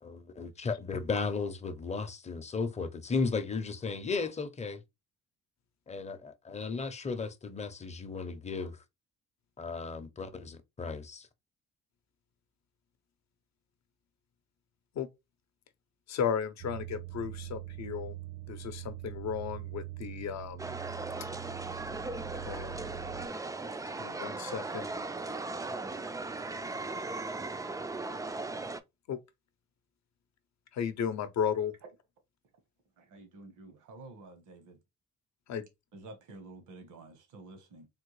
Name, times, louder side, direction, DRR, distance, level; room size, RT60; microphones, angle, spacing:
voice 1, 0.0-4.8 5.9-8.8 9.6-11.3, left 4 dB, 25° left, 0.6 m, -35 dB
voice 2, 16.1-18.2 18.5-20.8 22.4-22.7 24.0-24.9 29.1-29.2 30.7-31.7 35.5-35.7, left 7 dB, 65° left, 0.7 m, -34 dB
sound 1, 16.6-23.3, right 12 dB, 55° right, 0.6 m, -43 dB
sound 2, 20.6-28.8, right 3 dB, 10° right, 0.3 m, -38 dB
voice 3, 33.0-34.8 35.9-37.9, right 2 dB, 80° right, 1.1 m, -50 dB
3.6 x 2.2 x 3.0 m
cardioid pair, 90°, 30 cm